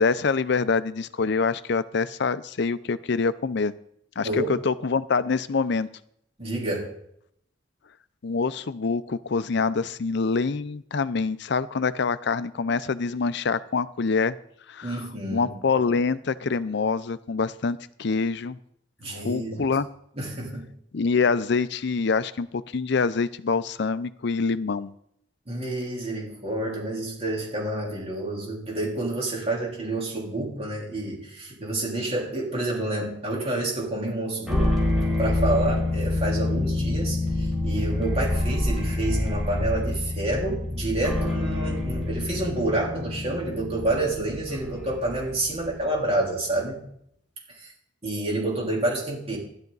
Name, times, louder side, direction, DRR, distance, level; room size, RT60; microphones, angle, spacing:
voice 1, 0.0-3.7 4.2-5.9 8.2-14.4 14.7-15.0 15.3-18.6 19.1-19.9 20.9-24.9, left 4 dB, 65° left, 15 dB, 0.5 m, -25 dB
voice 2, 6.4-6.9 14.8-15.5 19.0-19.7 20.2-20.7 25.5-34.8 35.2-46.8 47.5-47.7 48.0-49.4, right 2 dB, 35° right, -3 dB, 3.7 m, -28 dB
sound 1, 34.5-45.8, left 2 dB, ahead, 4.6 m, -27 dB
13.5 x 11.5 x 4.0 m, 0.71 s
head